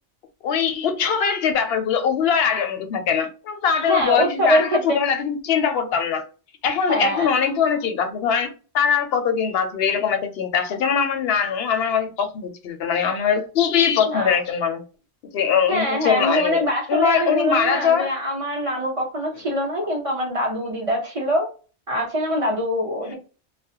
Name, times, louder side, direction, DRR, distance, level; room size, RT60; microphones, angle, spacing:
voice 1, 0.4-6.3 6.6-14.8 15.3-18.1 23.0-23.1, left 7 dB, 70° left, 0.8 m, -22 dB
voice 2, 3.9-5.0 6.9-7.3 14.1-14.4 15.7-21.5 21.9-23.1, equal, 35° right, 0.9 m, -23 dB
2.4 x 2.1 x 2.7 m
omnidirectional pair, 1.1 m